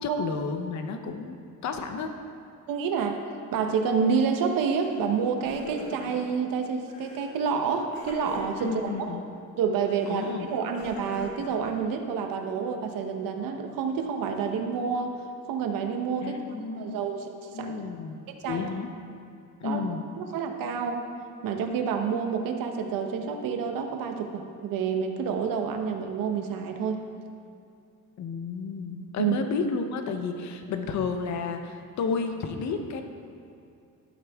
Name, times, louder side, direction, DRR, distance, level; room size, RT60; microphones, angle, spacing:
voice 1, 0.0-2.1 8.6-9.2 10.1-10.5 16.2-17.0 17.5-18.2 18.4-18.9 19.6-20.0 28.2-33.0, left 5 dB, 55° left, 6 dB, 0.9 m, -32 dB
voice 2, 2.7-3.2 3.5-9.2 9.6-15.2 15.5-16.4 16.7-17.8 18.4-18.6 19.6-19.8 20.2-21.0 21.4-27.0 29.2-29.4, right 6 dB, 80° right, 5 dB, 1.0 m, -28 dB
Crying sobbing, 4.8-5.1 5.3-6.4 6.9-7.3 7.9-8.9 9.8-12.1, left 3 dB, 80° left, 1.8 m, -43 dB
12.5 x 7.8 x 3.6 m, 2.5 s
cardioid pair, 150°, 33 cm